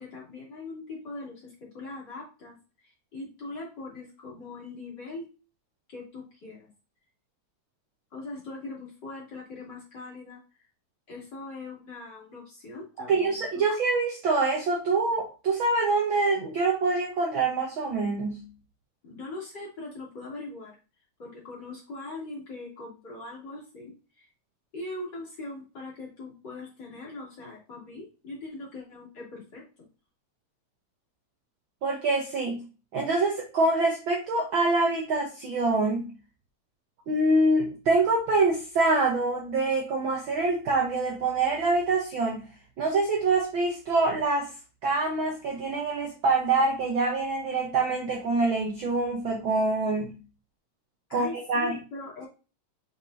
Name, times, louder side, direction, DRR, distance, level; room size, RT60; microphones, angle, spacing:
voice 1, 0.0-2.6 2.8-5.3 5.9-6.7 8.1-10.4 11.1-13.6 19.0-20.8 21.2-24.3 24.7-29.6 51.1-52.3, left 2 dB, 35° left, -6 dB, 3.4 m, -41 dB
voice 2, 13.1-18.4 31.8-32.6 32.9-36.1 37.1-42.4 42.8-44.5 44.8-50.2 51.1-51.8, right 3 dB, 60° right, 1 dB, 1.4 m, -25 dB
6.6 x 5.4 x 2.7 m, 0.33 s
omnidirectional pair, 3.3 m